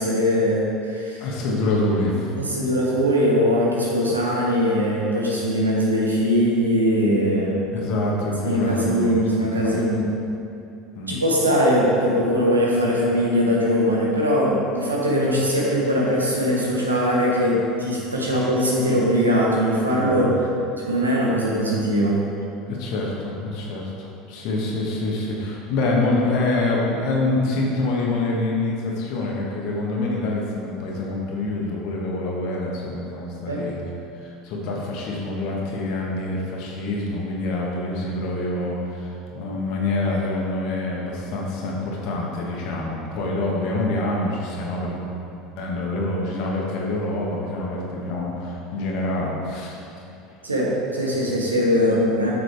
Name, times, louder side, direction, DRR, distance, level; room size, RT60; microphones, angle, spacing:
voice 1, 0.0-1.2 2.4-7.6 8.4-10.0 11.1-20.4 20.9-22.3 33.5-33.6 50.4-52.3, equal, 90° right, -4 dB, 1.2 m, -21 dB
voice 2, 1.2-2.3 7.7-9.2 9.6-9.8 10.9-11.2 18.3-18.4 20.0-20.3 22.7-33.8 34.2-45.0 45.6-49.8, left 2 dB, 55° left, -2 dB, 1.4 m, -26 dB
7.1 x 6.1 x 3.4 m, 2.6 s
figure-of-eight pair, 75°, 0 cm